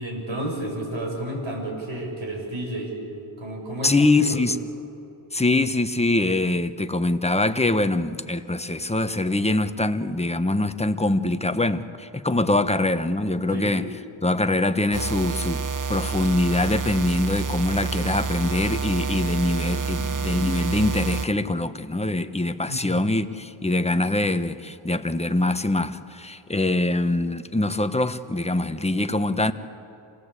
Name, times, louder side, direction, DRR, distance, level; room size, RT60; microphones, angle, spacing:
voice 1, 0.0-4.4 13.5-13.7 22.7-23.1, right 1 dB, 65° right, 6.7 m, -31 dB
voice 2, 3.8-4.6 5.3-13.9 14.2-15.6 15.9-29.5, left 2 dB, 15° left, 1.1 m, -23 dB
sound 1, 14.9-21.3, right 5 dB, 40° right, 1.0 m, -28 dB
27.5 x 18.5 x 8.3 m
cardioid pair, 65°, 50 cm